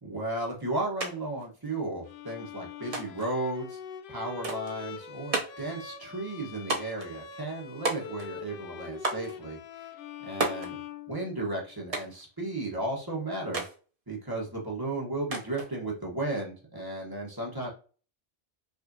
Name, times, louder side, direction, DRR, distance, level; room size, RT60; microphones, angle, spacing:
voice 1, 0.0-3.8 4.1-9.9 10.2-10.8 11.1-13.6 14.1-17.7, right 2 dB, 20° right, -3 dB, 1.2 m, -34 dB
sound 1, 1.0-1.1 1.4-2.1 2.9-3.3 4.4-4.8 5.3-5.7 6.7-7.1 7.8-8.4 9.0-9.3 10.4-10.7 11.9-12.2 13.5-13.8 15.3-15.7, right 2 dB, 35° right, 0.7 m, -32 dB
Bowed string instrument, 2.0-11.8, left 8 dB, 60° left, 0.6 m, -44 dB
5.3 x 2.7 x 2.7 m, 0.38 s
omnidirectional pair, 1.2 m